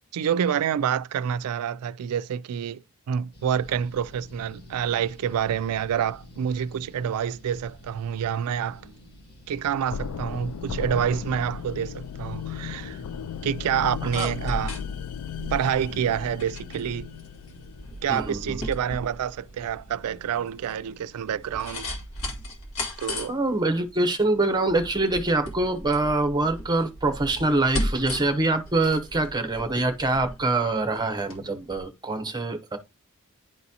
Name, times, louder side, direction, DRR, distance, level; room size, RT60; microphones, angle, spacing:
voice 1, 0.1-2.8 3.1-8.8 9.5-13.0 13.4-14.7 15.5-17.1 18.0-21.9 23.0-23.3, right 8 dB, 85° right, 0.3 m, -27 dB
sound 1, 3.3-21.7, equal, 45° left, 1.6 m, -50 dB
sound 2, 9.9-18.8, left 7 dB, 85° left, 0.4 m, -36 dB
sound 3, 13.8-31.4 31.7-31.8, left 1 dB, 65° left, 2.1 m, -36 dB
voice 2, 18.1-18.6 23.3-32.8, right 2 dB, 20° right, 0.8 m, -25 dB
10.5 x 4.0 x 2.8 m
head